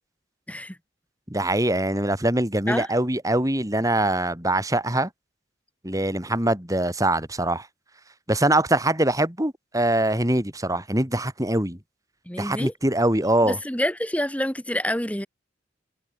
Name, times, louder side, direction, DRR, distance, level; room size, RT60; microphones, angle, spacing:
voice 1, 1.3-5.1 5.8-7.7 8.3-11.8 12.4-13.6, right 1 dB, 20° right, 4.6 m, -23 dB
voice 2, 12.3-12.7 13.4-15.3, left 1 dB, 5° left, 4.0 m, -27 dB
head